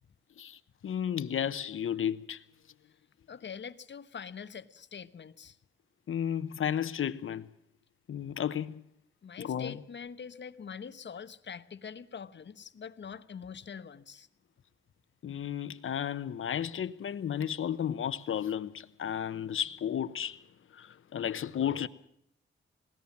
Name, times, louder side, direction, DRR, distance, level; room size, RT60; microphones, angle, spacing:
voice 1, 0.4-2.4 6.1-7.5 8.1-8.8 9.4-9.8 15.2-20.4 20.7-21.9, left 9 dB, 75° left, 1.0 m, -33 dB
voice 2, 3.3-5.6 9.2-14.3, left 6 dB, 60° left, 1.1 m, -44 dB
19.5 x 18.5 x 7.3 m
wide cardioid pair, 95°, 21 cm